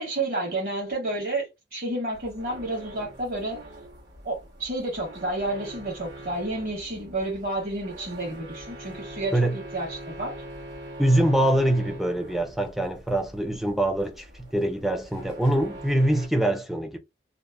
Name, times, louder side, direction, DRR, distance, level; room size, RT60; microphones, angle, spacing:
voice 1, 0.0-3.6 4.2-10.3, right 2 dB, 55° right, 1.3 m, -30 dB
sound 1, 2.1-16.3, right 1 dB, 85° right, 1.2 m, -43 dB
voice 2, 11.0-17.0, right 1 dB, ahead, 0.4 m, -24 dB
2.8 x 2.0 x 2.2 m
head